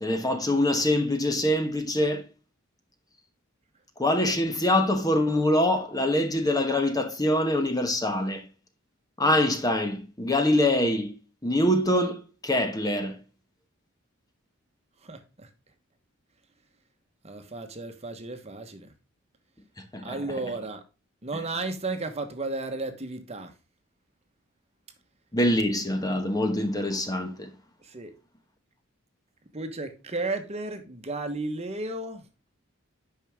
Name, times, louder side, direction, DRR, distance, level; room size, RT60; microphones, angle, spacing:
voice 1, 0.0-2.2 4.0-8.5 9.2-11.1 11.4-13.2 19.8-20.2 25.3-27.5, left 1 dB, 20° left, 1.1 m, -24 dB
voice 2, 15.0-15.5 17.2-18.9 20.0-20.8 21.2-23.5 27.8-28.1 29.5-32.2, right 2 dB, 30° right, 1.2 m, -34 dB
9.2 x 5.7 x 3.6 m
head